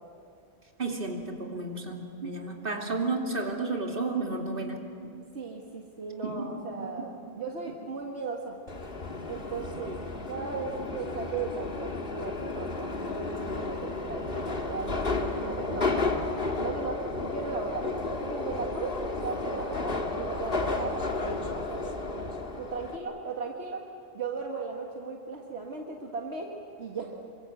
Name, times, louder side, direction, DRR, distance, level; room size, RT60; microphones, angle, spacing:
voice 1, 0.8-4.9 6.2-6.6, right 3 dB, 50° right, 1 dB, 2.9 m, -32 dB
voice 2, 5.3-8.6 9.3-10.0 10.3-15.9 16.6-22.3 22.6-23.8 24.1-27.2, right 4 dB, 70° right, 0 dB, 2.1 m, -37 dB
Subway metro underground, 8.7-23.0, left 3 dB, 55° left, 2.0 m, -32 dB
27.5 x 24.5 x 7.9 m, 2.4 s
omnidirectional pair, 1.2 m